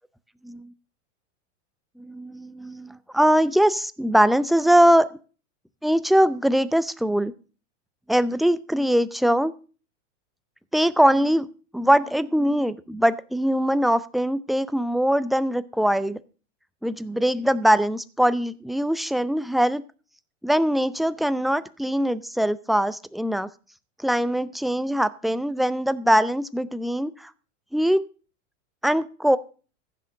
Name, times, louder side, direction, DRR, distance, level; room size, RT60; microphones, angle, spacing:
voice 1, 2.0-5.1 5.8-7.3 8.1-9.5 10.7-11.5 11.7-16.2 16.8-19.8 20.4-23.5 24.0-27.3 27.7-28.0 28.8-29.4, equal, ahead, 14 dB, 0.5 m, -22 dB
15.0 x 6.8 x 6.3 m, 0.37 s
supercardioid pair, 125°, 38 cm